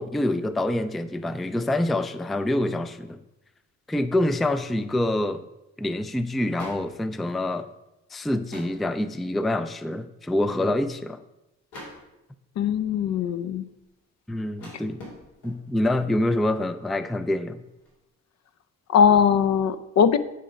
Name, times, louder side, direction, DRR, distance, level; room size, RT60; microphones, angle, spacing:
voice 1, 0.0-3.2 3.9-5.4 5.8-7.7 8.1-11.2 14.3-15.0 15.4-17.6, left 1 dB, ahead, 12 dB, 0.3 m, -26 dB
sound 1, 3.3-3.4 4.8-5.2 5.5-5.6 5.8-6.1 6.4-7.8 8.3-9.0 9.4-9.7 10.0-10.1 10.3-11.1 11.7-12.4 13.0-15.8 16.4-16.7 17.0-18.0, left 1 dB, 90° left, 3.5 m, -47 dB
voice 2, 12.6-13.7 18.9-20.2, left 7 dB, 60° left, 13 dB, 0.6 m, -20 dB
9.4 x 5.0 x 5.1 m, 0.94 s
cardioid pair, 90°, 30 cm